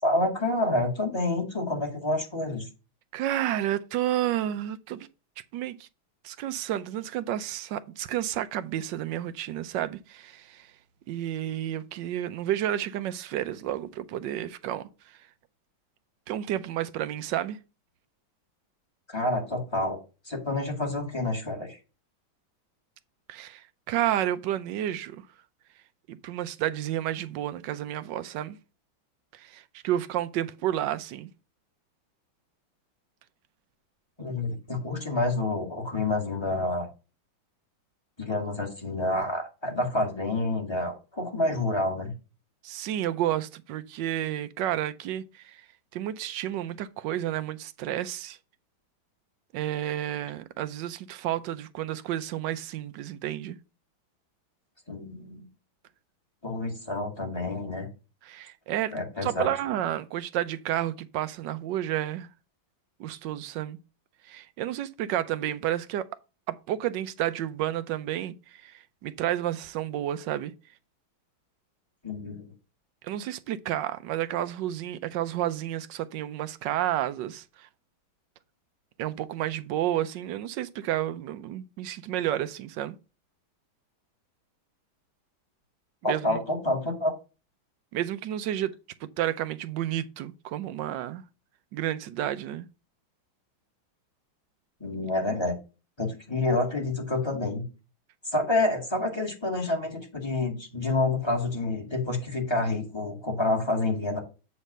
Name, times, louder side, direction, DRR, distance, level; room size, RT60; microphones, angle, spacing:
voice 1, 0.0-2.7 19.1-20.0 20.3-21.8 34.2-36.9 38.2-42.1 54.9-55.5 56.4-57.9 58.9-59.5 72.0-72.4 86.0-87.1 94.8-95.6 96.0-97.6 98.2-104.2, left 2 dB, 15° left, 1.9 m, -28 dB
voice 2, 3.1-5.1 5.5-5.9 6.2-10.7 11.1-14.9 16.3-17.6 23.3-25.2 26.1-28.6 29.3-31.3 42.6-45.6 45.9-48.4 49.5-53.6 58.2-58.9 59.2-62.3 63.0-63.8 64.2-66.1 66.5-70.5 73.0-77.7 79.0-83.0 86.0-86.4 87.9-91.2 91.7-92.7, right 12 dB, 70° right, 1.2 m, -31 dB
8.2 x 3.3 x 6.5 m
omnidirectional pair, 2.2 m